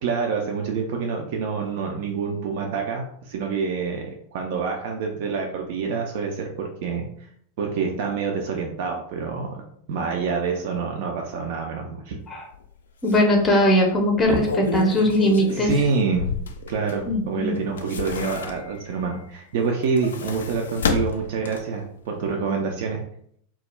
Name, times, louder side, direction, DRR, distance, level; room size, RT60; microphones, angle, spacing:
voice 1, 0.0-7.1 7.6-9.6 9.9-12.2 15.5-16.3 16.7-23.0, right 5 dB, 50° right, 1 dB, 0.3 m, -27 dB
sound 1, 12.5-12.7 13.1-13.2 14.1-17.2 17.6-18.9 19.7-21.8 22.2-22.3, left 5 dB, 65° left, 0.3 m, -30 dB
voice 2, 13.0-15.7 17.1-17.6, equal, 15° left, 2 dB, 0.6 m, -20 dB
2.3 x 2.0 x 3.0 m, 0.66 s
figure-of-eight pair, 90°, 0 cm